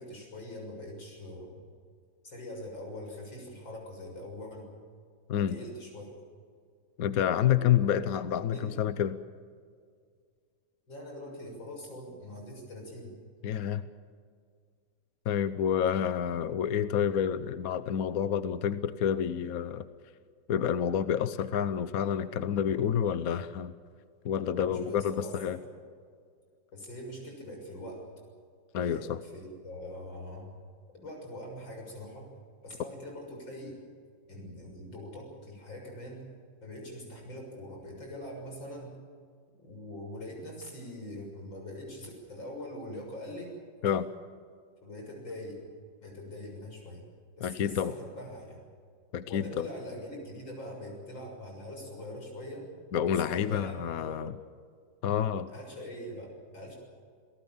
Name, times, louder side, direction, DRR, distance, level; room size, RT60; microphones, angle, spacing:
voice 1, 0.0-1.6 2.2-4.7 5.3-6.1 7.5-8.0 8.5-8.8 10.9-13.1 24.5-25.6 26.7-28.1 28.8-30.5 30.9-32.3 32.6-33.8 34.3-36.2 36.6-38.9 39.6-43.6 44.8-45.6 46.0-47.0 47.4-48.6 49.2-52.7 52.9-54.3 55.5-56.8, left 1 dB, 80° left, 1 dB, 7.4 m, -43 dB
voice 2, 7.0-9.2 13.4-13.8 15.3-19.9 20.5-23.7 24.2-25.6 28.7-29.2 43.8-44.1 47.4-47.9 49.1-49.7 52.9-54.3 55.0-55.5, left 9 dB, 60° left, 13 dB, 1.1 m, -28 dB
28.0 x 18.5 x 7.3 m, 2.1 s
omnidirectional pair, 2.0 m